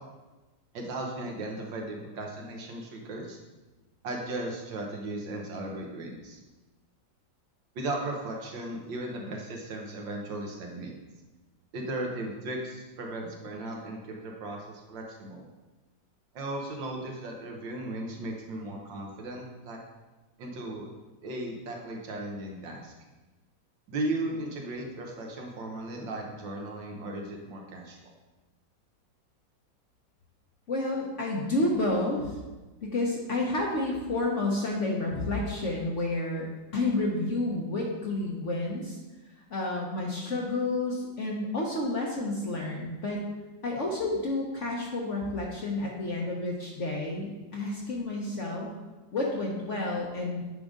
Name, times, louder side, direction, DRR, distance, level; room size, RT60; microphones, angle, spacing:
voice 1, 0.7-3.4 4.0-6.4 7.7-10.9 11.7-15.5 16.3-19.8 20.4-20.9 21.2-22.9 23.9-28.0, right 2 dB, 75° right, 0 dB, 1.8 m, -36 dB
voice 2, 30.7-32.4 32.8-36.5 36.7-39.0 39.5-43.2 43.6-48.7 49.1-50.4, left 2 dB, 50° left, -2 dB, 1.0 m, -30 dB
7.7 x 5.0 x 3.7 m, 1.1 s
omnidirectional pair, 2.1 m